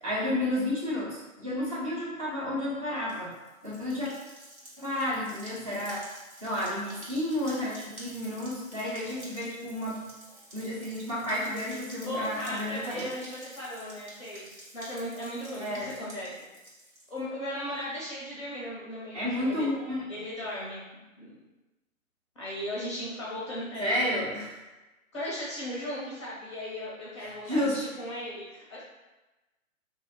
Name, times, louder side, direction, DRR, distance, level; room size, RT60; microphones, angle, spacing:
voice 1, 0.0-3.3 3.6-4.1 4.8-6.1 6.4-10.0 10.5-13.1 15.6-15.9 19.1-20.0 23.8-24.6 27.2-27.9, left 1 dB, 25° right, -7 dB, 0.6 m, -31 dB
sound 1, 3.0-17.2, right 1 dB, 80° right, 1.5 m, -49 dB
voice 2, 11.9-14.5 14.7-16.3 17.1-19.7 20.1-21.4 22.4-24.2 25.1-28.8, left 1 dB, 20° left, -6 dB, 0.5 m, -37 dB
2.5 x 2.1 x 3.9 m, 1.1 s
figure-of-eight pair, 135°, 41 cm